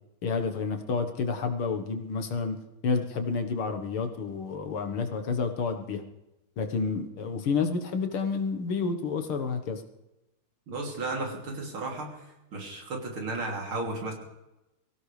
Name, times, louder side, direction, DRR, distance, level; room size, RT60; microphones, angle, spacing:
voice 1, 0.2-2.6 2.8-6.0 6.6-9.8, left 4 dB, 80° left, 5 dB, 2.3 m, -29 dB
voice 2, 10.7-12.1 12.5-14.1, right 2 dB, 75° right, 0 dB, 3.8 m, -34 dB
24.0 x 16.0 x 3.4 m, 0.95 s
omnidirectional pair, 2.3 m